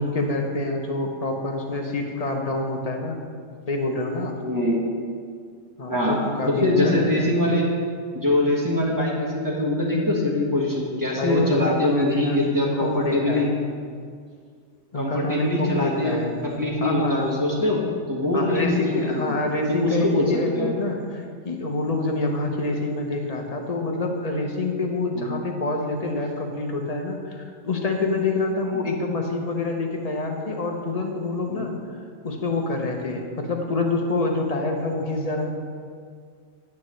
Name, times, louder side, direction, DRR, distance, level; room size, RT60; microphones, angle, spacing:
voice 1, 0.0-3.2 3.7-4.4 5.8-7.3 10.9-12.5 12.8-13.5 14.9-16.5 16.8-17.3 18.3-31.7 32.2-35.5, left 2 dB, 35° left, 2 dB, 0.8 m, -27 dB
voice 2, 4.4-4.8 5.9-6.2 6.6-7.6 8.1-13.4 14.9-16.2 16.6-17.8 18.1-19.3 19.7-20.7 25.1-25.3 28.7-28.8 31.5-31.7, left 1 dB, 15° right, -4 dB, 1.5 m, -23 dB
9.3 x 8.7 x 3.2 m, 2.1 s
omnidirectional pair, 1.4 m